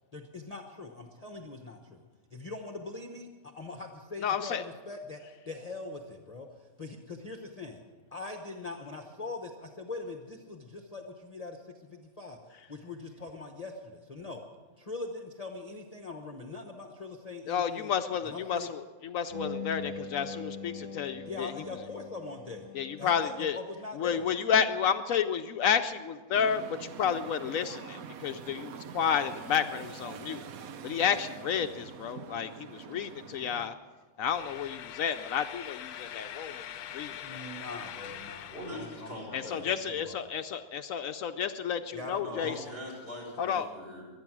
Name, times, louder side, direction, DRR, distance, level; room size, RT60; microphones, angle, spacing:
voice 1, 0.1-2.0 2.3-3.3 3.6-6.5 6.8-7.8 8.1-12.4 12.7-14.4 14.8-17.9 18.2-18.7 21.3-22.7 23.0-24.3 37.2-40.3 41.9-42.6, left 3 dB, 30° left, 3 dB, 1.0 m, -42 dB
voice 2, 4.2-4.6 17.5-21.5 22.7-23.6 24.0-30.4 30.8-33.7 34.2-36.6 36.9-37.4 39.3-42.5 43.4-43.7, left 7 dB, 70° left, 9 dB, 1.0 m, -31 dB
sound 1, 19.3-24.8, left 4 dB, 25° right, 5.0 m, -43 dB
sound 2, 26.3-33.7, right 7 dB, 75° right, 1.2 m, -45 dB
sound 3, 34.3-39.3, left 10 dB, 90° left, 1.2 m, -43 dB
voice 3, 38.5-39.8 42.2-44.0, equal, 40° right, -3 dB, 6.0 m, -42 dB
23.0 x 9.0 x 6.1 m, 1.4 s
omnidirectional pair, 1.5 m